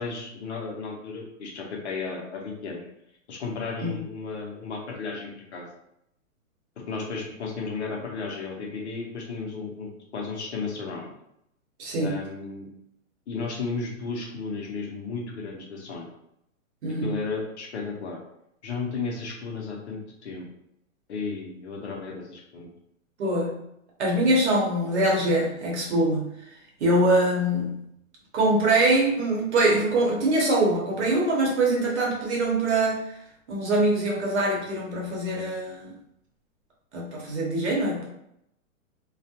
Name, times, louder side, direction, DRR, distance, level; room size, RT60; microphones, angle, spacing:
voice 1, 0.0-2.8 3.3-5.7 6.8-11.1 12.0-12.7 13.3-16.1 17.0-18.2 18.6-20.5 21.1-22.7, left 4 dB, 55° left, -1 dB, 0.7 m, -34 dB
voice 2, 11.8-12.1 16.8-17.1 23.2-23.6 24.0-26.3 26.8-27.8 28.3-33.0 33.5-35.9 36.9-38.1, right 1 dB, 55° right, -3 dB, 1.0 m, -23 dB
2.4 x 2.1 x 2.7 m, 0.78 s
hypercardioid pair, 175°, 41 cm